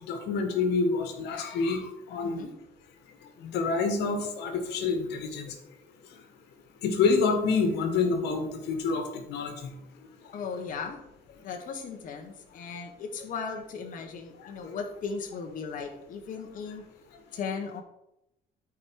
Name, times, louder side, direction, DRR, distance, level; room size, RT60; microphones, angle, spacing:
voice 1, 0.1-2.5 3.5-5.5 6.8-9.0 9.3-9.5, left 4 dB, 80° left, 6 dB, 1.7 m, -27 dB
voice 2, 2.2-2.5 10.3-11.0 11.4-16.8 17.3-17.8, left 5 dB, 55° left, 3 dB, 1.4 m, -37 dB
12.5 x 5.0 x 4.7 m, 0.84 s
cardioid pair, 110°, 17 cm